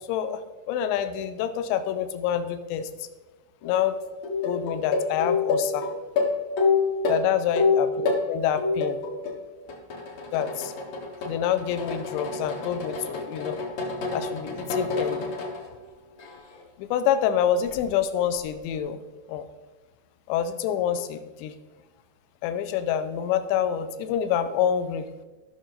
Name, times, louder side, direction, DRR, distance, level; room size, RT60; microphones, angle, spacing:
voice 1, 0.1-0.4 0.7-3.1 3.6-4.0 4.4-5.9 7.1-9.0 10.3-10.7 11.3-13.6 14.1-15.3 16.8-19.0 19.3-19.4 20.3-21.5 22.4-25.1, left 9 dB, 80° left, 10 dB, 2.7 m, -27 dB
sound 1, 3.6-3.8 4.2-8.2 8.6-9.4 9.7-15.6 16.2-16.6 17.7-17.8, left 4 dB, 60° left, 1.7 m, -27 dB
16.0 x 6.2 x 3.9 m, 1.2 s
omnidirectional pair, 5.6 m